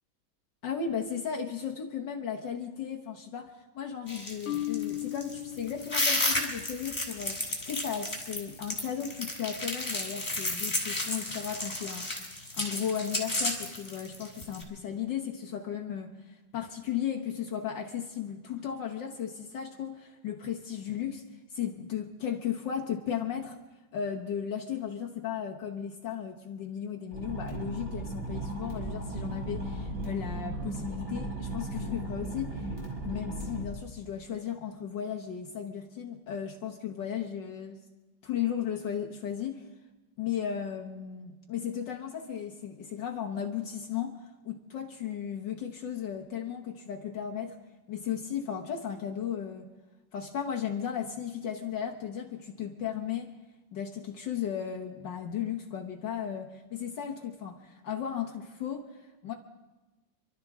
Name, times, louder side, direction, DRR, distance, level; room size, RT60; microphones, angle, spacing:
voice 1, 0.6-23.6 23.9-32.7 33.0-37.8 38.2-39.7 40.2-47.6 47.9-49.7 50.1-53.4 53.7-59.3, left 8 dB, 70° left, 1 dB, 1.8 m, -35 dB
sound 1, 4.1-14.6, left 2 dB, 25° left, 3.4 m, -32 dB
Marimba xylophone, 4.5-6.5, left 14 dB, 40° left, 1.3 m, -36 dB
sound 2, 27.1-33.6, right 1 dB, 15° right, 5.4 m, -36 dB
27.5 x 12.5 x 3.6 m, 1.1 s
omnidirectional pair, 2.1 m